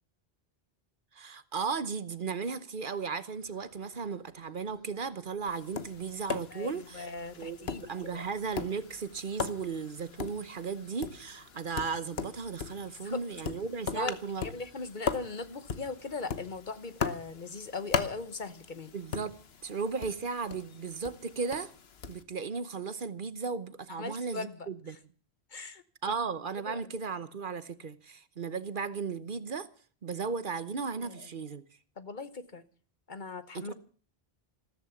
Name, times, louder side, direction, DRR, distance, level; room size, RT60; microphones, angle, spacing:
voice 1, 1.1-7.1 7.4-14.4 18.9-19.3 19.6-21.7 22.1-25.0 26.0-29.7 30.0-31.6 33.5-33.7, right 5 dB, 55° right, 1.1 m, -36 dB
sound 1, 3.3-16.4, equal, ahead, 6.3 m, -66 dB
Tap, 5.5-22.2, left 6 dB, 75° left, 1.3 m, -39 dB
voice 2, 6.5-8.3 13.0-13.2 13.9-18.9 23.9-25.0 25.5-26.1 26.6-26.9 31.0-31.3 32.0-32.6 33.1-33.7, left 4 dB, 50° left, 1.2 m, -39 dB
14.5 x 13.5 x 7.1 m
omnidirectional pair, 1.0 m